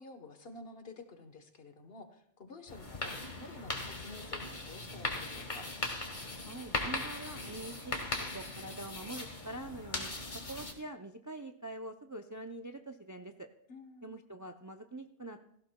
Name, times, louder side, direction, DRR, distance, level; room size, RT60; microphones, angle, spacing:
voice 1, 0.0-5.7 13.7-14.2, left 3 dB, 65° left, 7 dB, 1.4 m, -50 dB
sound 1, 2.7-10.7, left 2 dB, 45° left, 1.8 m, -39 dB
voice 2, 6.4-10.1 10.5-13.5 14.0-15.4, right 2 dB, 25° right, 6 dB, 0.4 m, -45 dB
17.0 x 15.0 x 2.2 m, 0.72 s
omnidirectional pair, 1.1 m